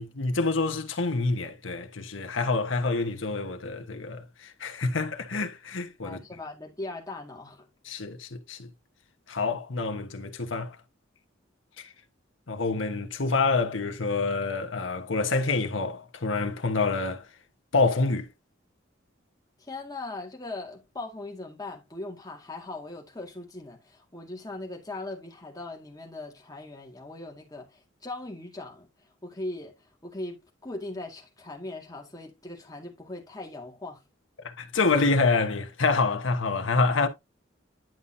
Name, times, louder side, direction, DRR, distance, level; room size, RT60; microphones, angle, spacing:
voice 1, 0.0-6.2 7.8-8.7 9.3-10.8 12.5-17.3 17.7-18.3 34.4-37.1, left 3 dB, 80° left, 1.2 m, -27 dB
voice 2, 6.0-7.7 19.6-34.0, left 2 dB, 20° left, 2.0 m, -39 dB
10.5 x 5.5 x 2.7 m
head